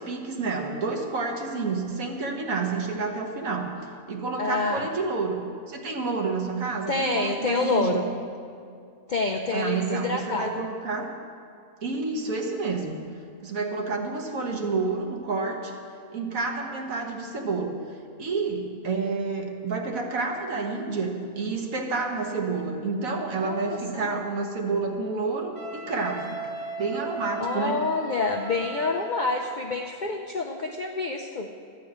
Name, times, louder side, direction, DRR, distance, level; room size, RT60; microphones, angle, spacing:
voice 1, 0.0-3.7 4.1-8.1 9.5-11.1 11.8-13.1 13.4-15.8 16.1-17.8 18.2-26.4 26.8-27.8, right 4 dB, 70° right, 3 dB, 1.6 m, -29 dB
voice 2, 4.4-4.9 6.9-8.1 9.1-10.6 23.4-24.2 27.4-31.5, left 3 dB, 55° left, 2 dB, 0.5 m, -27 dB
Wind instrument woodwind instrument, 25.5-29.5, right 2 dB, 85° right, 2.7 m, -37 dB
13.0 x 5.4 x 8.7 m, 2.4 s
omnidirectional pair, 1.5 m